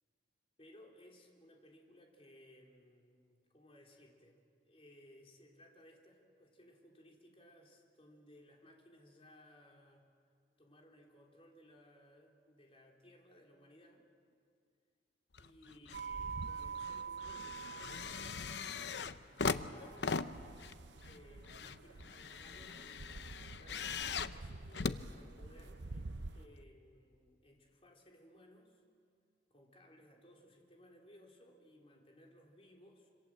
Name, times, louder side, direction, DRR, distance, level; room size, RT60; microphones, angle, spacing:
voice 1, 0.6-10.0 10.6-14.0 15.4-20.0 21.0-28.8 29.5-33.1, equal, 30° left, 0 dB, 3.8 m, -61 dB
sound 1, 15.3-16.1 16.4-25.8 26.6-26.7, left 5 dB, 70° left, 0.8 m, -40 dB
sound 2, 15.9-26.5, right 4 dB, 75° right, 0.8 m, -47 dB
27.0 x 26.5 x 7.7 m, 2.3 s
head